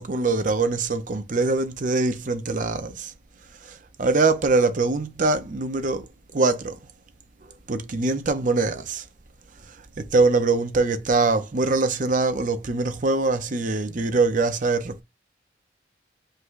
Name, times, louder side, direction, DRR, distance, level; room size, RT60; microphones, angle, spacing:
voice 1, 0.0-3.1 3.6-6.1 6.3-6.8 7.7-9.0 10.0-15.0, right 3 dB, 45° right, 0.6 m, -23 dB
5.3 x 2.2 x 3.8 m
head